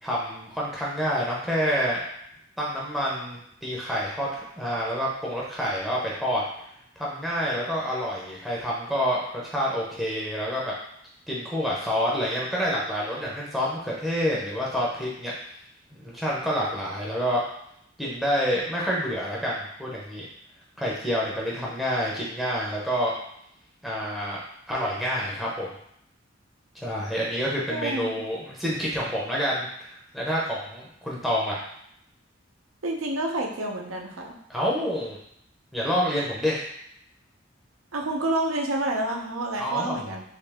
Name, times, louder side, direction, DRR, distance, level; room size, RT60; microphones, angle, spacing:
voice 1, 0.0-2.0 2.6-6.4 7.0-10.7 11.3-15.3 15.9-17.4 18.0-20.3 20.8-23.1 23.8-24.4 24.7-25.7 26.7-31.6 34.5-35.2 35.7-36.7 39.6-40.0, equal, ahead, -5 dB, 0.6 m, -28 dB
voice 2, 27.7-28.1 32.8-34.4 37.9-40.2, right 1 dB, 85° right, 0 dB, 0.7 m, -28 dB
3.3 x 2.8 x 3.4 m, 0.72 s
head